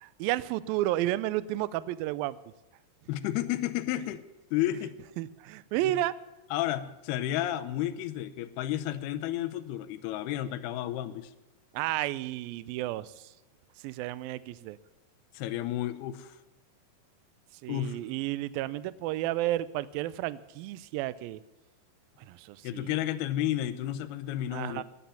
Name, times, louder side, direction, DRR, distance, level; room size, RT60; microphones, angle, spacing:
voice 1, 0.0-2.4 5.2-6.1 11.7-13.3 13.8-14.8 17.6-21.4 22.3-23.0 24.5-24.8, right 15 dB, 80° right, 18 dB, 2.2 m, -32 dB
voice 2, 3.1-4.2 4.5-4.9 6.5-11.3 15.3-16.4 17.7-18.0 22.6-24.8, left 13 dB, 80° left, 9 dB, 2.8 m, -32 dB
16.0 x 10.0 x 7.0 m, 1.1 s
omnidirectional pair, 4.6 m